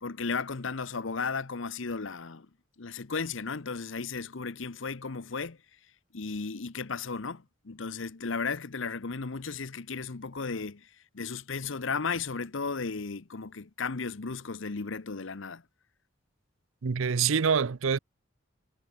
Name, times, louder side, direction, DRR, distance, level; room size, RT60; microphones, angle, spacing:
voice 1, 0.0-2.5 2.8-5.6 6.1-10.9 11.1-15.6, left 4 dB, 70° left, 0.9 m, -35 dB
voice 2, 16.8-18.0, right 6 dB, 80° right, 0.6 m, -25 dB
head